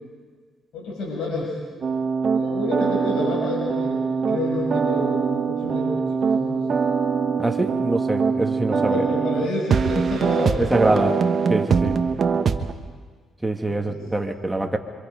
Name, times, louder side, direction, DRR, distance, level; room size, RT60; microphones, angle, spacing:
voice 1, 0.7-1.5 2.3-4.0 4.3-6.6 8.7-11.0 13.7-14.0, left 2 dB, 80° left, -3 dB, 7.3 m, -29 dB
sound 1, 1.8-12.7, right 5 dB, 50° right, 1.3 m, -23 dB
voice 2, 7.4-9.0 10.6-11.1 11.5-12.0 13.4-14.8, right 2 dB, 10° right, 3 dB, 2.2 m, -24 dB
27.0 x 25.5 x 5.3 m, 1.5 s
cardioid pair, 90°, 0 cm